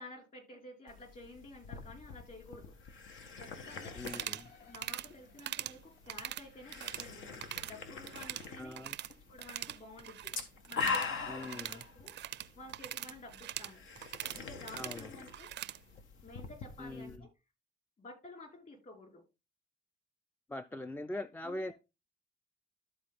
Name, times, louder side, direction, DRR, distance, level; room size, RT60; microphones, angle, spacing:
voice 1, 0.0-2.7 3.4-4.0 4.7-7.3 7.6-8.9 9.3-10.3 10.7-12.2 12.6-13.8 14.4-15.5 16.2-17.3 18.0-19.2 21.4-21.7, left 2 dB, 45° left, 5.2 m, -51 dB
sound 1, 0.9-17.2, left 5 dB, 75° left, 1.4 m, -44 dB
sound 2, 3.7-6.0 6.3-7.2 7.5-9.0, left 6 dB, 60° left, 1.3 m, -61 dB
voice 2, 3.9-4.5 8.6-9.0 11.3-11.8 14.8-15.1 16.8-17.3 20.5-21.7, left 1 dB, 10° left, 0.4 m, -42 dB
sound 3, 4.0-4.5 4.7-5.1 5.4-5.8 6.1-7.1 7.3-7.7 8.0-9.1 9.4-15.8, right 12 dB, 65° right, 0.5 m, -42 dB
13.0 x 4.4 x 3.7 m
cardioid pair, 90°, 20 cm